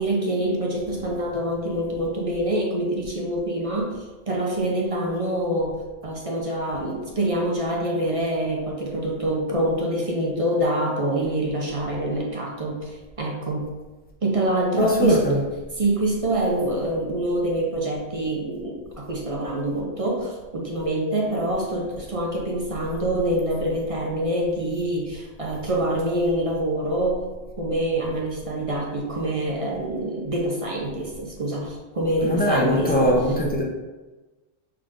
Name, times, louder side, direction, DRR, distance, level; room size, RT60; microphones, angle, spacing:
voice 1, 0.0-13.7 14.2-15.2 15.8-27.2 27.6-33.1, right 1 dB, 40° right, -2 dB, 0.5 m, -25 dB
voice 2, 14.8-15.4 32.2-33.6, equal, 10° left, -2 dB, 0.4 m, -21 dB
5.7 x 3.6 x 2.5 m, 1.2 s
omnidirectional pair, 1.3 m